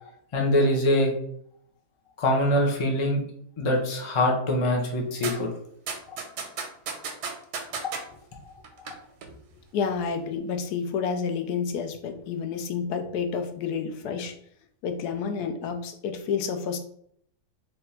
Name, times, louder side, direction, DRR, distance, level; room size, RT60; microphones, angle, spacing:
voice 1, 0.3-1.1 2.2-3.2 3.6-5.5, left 1 dB, 45° left, 0 dB, 0.4 m, -23 dB
sound 1, 5.2-5.3 5.9-8.0 8.6-8.9 9.2-9.3, right 5 dB, 90° right, 1.3 m, -32 dB
voice 2, 9.7-14.3 14.8-16.8, left 6 dB, 80° left, 6 dB, 1.1 m, -29 dB
3.4 x 2.5 x 4.2 m, 0.68 s
omnidirectional pair, 1.7 m